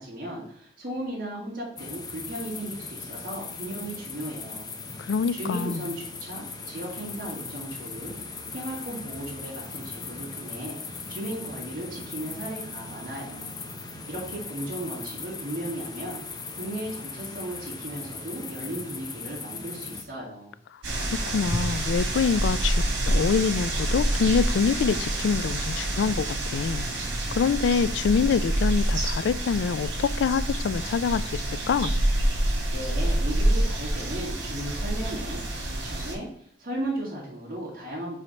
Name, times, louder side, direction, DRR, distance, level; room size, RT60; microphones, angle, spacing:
voice 1, 0.0-20.5 32.4-38.2, right 1 dB, 50° right, -6 dB, 2.3 m, -36 dB
sound 1, 1.8-20.0, left 4 dB, 20° left, 0.6 m, -39 dB
voice 2, 5.1-5.8 21.3-26.9 27.3-32.0, left 6 dB, 80° left, 17 dB, 0.3 m, -25 dB
sound 2, 20.8-36.1, right 1 dB, 80° right, 2.1 m, -27 dB
4.9 x 4.3 x 5.2 m, 0.65 s
head